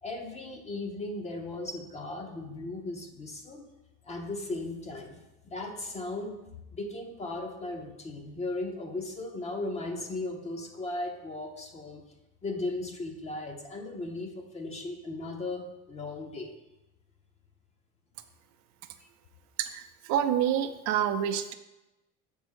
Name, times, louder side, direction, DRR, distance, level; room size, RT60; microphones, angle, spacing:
voice 1, 0.0-3.7 4.0-6.4 6.7-12.1 12.4-16.5 19.0-19.1, left 2 dB, 20° left, 3 dB, 0.7 m, -37 dB
voice 2, 19.6-21.5, right 10 dB, 60° right, 9 dB, 0.5 m, -28 dB
7.1 x 3.6 x 6.2 m, 0.99 s
cardioid pair, 175°, 31 cm